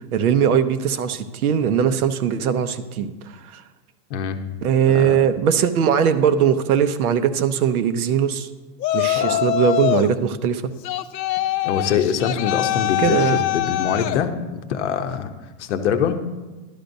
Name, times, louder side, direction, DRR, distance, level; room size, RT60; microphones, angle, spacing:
voice 1, 0.1-3.6 4.6-8.5 8.9-10.7 13.0-13.4, right 8 dB, 60° right, 11 dB, 0.8 m, -20 dB
voice 2, 4.9-5.2 9.1-9.4 11.6-15.3 15.6-16.2, left 7 dB, 45° left, 7 dB, 0.8 m, -24 dB
Yell, 8.8-10.1 10.8-14.2, left 13 dB, 85° left, 0.7 m, -23 dB
12.5 x 11.5 x 2.6 m, 1.2 s
supercardioid pair, 170°, 50 cm